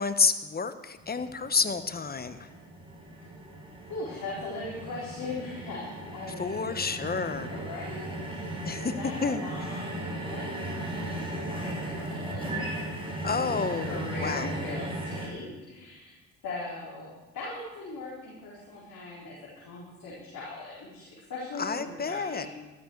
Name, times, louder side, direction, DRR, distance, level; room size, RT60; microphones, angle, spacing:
voice 1, 0.0-2.5 6.4-7.5 8.6-8.9 9.2-9.4 13.2-14.5 21.6-22.5, left 5 dB, 25° left, 11 dB, 1.1 m, -29 dB
sound 1, 1.0-15.3, right 1 dB, 15° right, 5.1 m, -37 dB
voice 2, 3.9-5.9 6.1-6.9 7.5-16.2 16.4-22.5, left 3 dB, 65° left, -6 dB, 4.2 m, -40 dB
13.5 x 13.0 x 4.6 m, 1.2 s
supercardioid pair, 65°, 36 cm